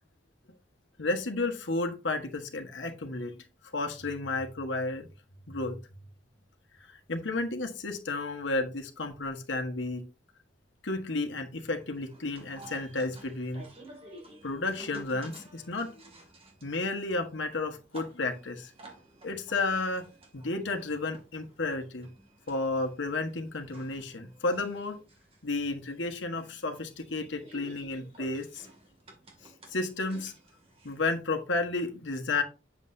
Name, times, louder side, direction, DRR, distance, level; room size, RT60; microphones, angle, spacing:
voice 1, 1.0-3.4 3.7-5.1 5.5-5.8 6.8-10.0 10.8-13.7 14.4-15.9 16.6-18.7 19.2-20.1 20.3-22.1 22.5-25.0 25.4-28.7 29.7-30.3 30.8-32.4, left 3 dB, 80° left, 4 dB, 1.4 m, -32 dB
sound 1, 11.6-31.2, right 2 dB, 30° right, 2.3 m, -53 dB
7.7 x 7.2 x 2.7 m, 0.31 s
head